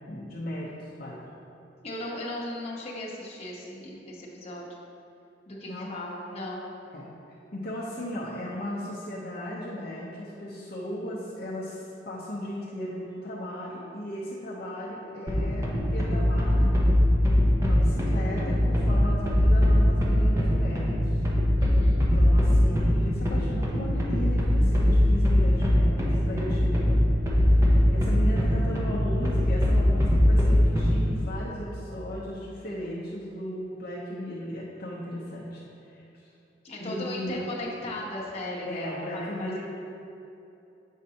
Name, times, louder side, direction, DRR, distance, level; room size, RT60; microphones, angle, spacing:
voice 1, 0.1-0.7 1.0-1.2 5.7-5.9 6.9-7.1 7.5-16.7 17.6-21.2 22.0-26.0 26.3-27.2 27.5-36.0 36.8-37.4 38.6-39.6, left 1 dB, 55° left, -6 dB, 0.8 m, -36 dB
voice 2, 1.8-4.7 5.5-6.7 21.6-22.2 36.6-39.6, left 1 dB, 35° left, -5 dB, 1.0 m, -37 dB
sound 1, 15.3-31.2, left 1 dB, 15° right, 0.7 m, -22 dB
7.4 x 5.2 x 2.8 m, 2.8 s
head